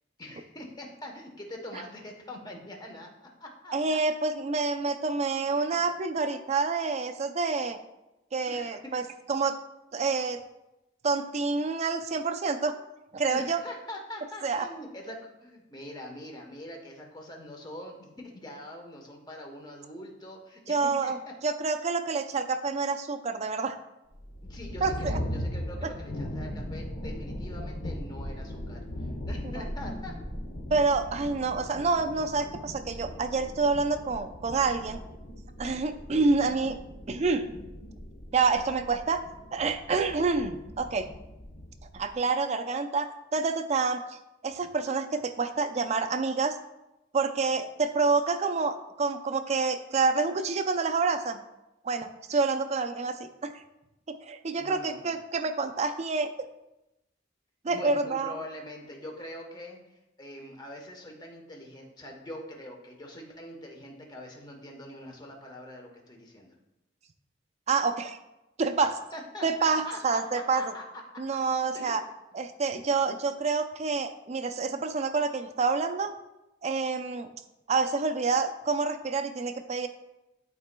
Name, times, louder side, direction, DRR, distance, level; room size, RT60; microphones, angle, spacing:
voice 1, 0.2-3.7 5.4-5.8 8.5-9.1 13.3-21.3 24.4-28.8 29.3-30.2 54.6-55.2 57.6-59.8 60.2-66.5 69.1-70.2 70.5-71.2 71.7-71.9, left 1 dB, 20° left, 1 dB, 1.0 m, -43 dB
voice 2, 3.7-7.8 8.3-9.0 9.3-9.6 9.9-10.4 11.0-12.8 13.1-13.6 14.4-14.7 20.7-21.2 21.4-23.8 24.8-25.2 29.6-29.7 30.7-35.0 35.6-36.8 37.1-37.5 38.3-39.2 39.5-41.1 41.9-44.2 44.4-46.6 47.1-51.4 51.8-53.5 54.1-56.5 57.6-58.4 67.7-68.2 68.6-69.0 69.4-70.6 71.2-72.0 72.3-76.1 76.6-77.3 77.7-79.9, right 4 dB, 35° right, 8 dB, 0.4 m, -28 dB
sound 1, 24.1-42.1, left 1 dB, 75° left, 1.0 m, -39 dB
11.5 x 4.1 x 2.2 m, 0.94 s
head